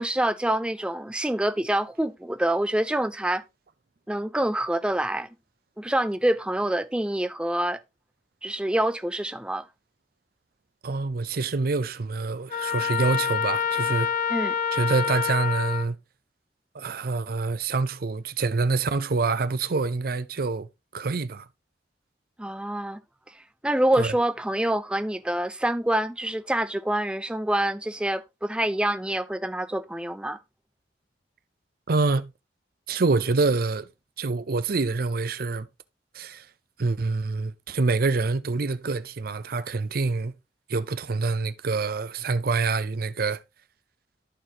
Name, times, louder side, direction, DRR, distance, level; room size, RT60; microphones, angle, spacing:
voice 1, 0.0-3.4 4.1-5.3 5.8-7.8 8.4-9.7 14.3-14.6 22.4-23.0 23.3-30.4, right 1 dB, 5° right, 0.4 m, -26 dB
voice 2, 10.8-14.1 14.7-16.0 16.7-21.5 24.0-24.1 31.9-32.3 32.9-33.9 34.2-35.7 36.1-36.4 36.8-40.3 40.7-43.4, right 3 dB, 55° right, 0.6 m, -26 dB
Trumpet, 12.5-15.9, left 7 dB, 50° left, 0.6 m, -27 dB
13.5 x 4.5 x 2.9 m
head